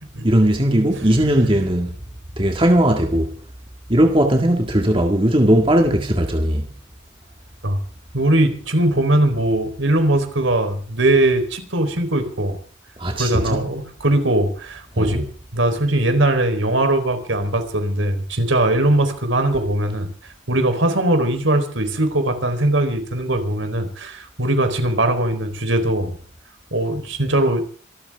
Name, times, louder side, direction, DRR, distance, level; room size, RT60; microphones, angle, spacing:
voice 1, 0.2-1.9 2.4-3.3 3.9-6.7 13.0-13.7 15.0-15.2, right 1 dB, 25° right, 2.0 m, -18 dB
voice 2, 8.1-12.6 13.1-15.3 15.5-20.1 20.5-26.2 26.7-27.6, right 1 dB, 75° right, 4.1 m, -20 dB
26.5 x 13.5 x 3.6 m
head